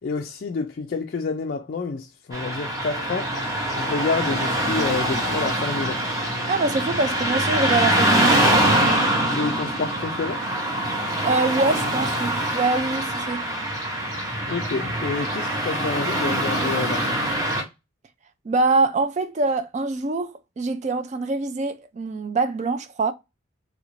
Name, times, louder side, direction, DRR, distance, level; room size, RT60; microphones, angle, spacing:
voice 1, 0.0-6.0 9.3-10.4 14.5-17.4, left 4 dB, 45° left, 0.3 m, -29 dB
Car passing by / Traffic noise roadway noise, 2.3-17.6, right 1 dB, 15° right, 0.8 m, -24 dB
voice 2, 6.5-8.4 11.2-13.5 18.4-23.1, right 3 dB, 35° right, 0.3 m, -24 dB
3.2 x 2.5 x 3.0 m
head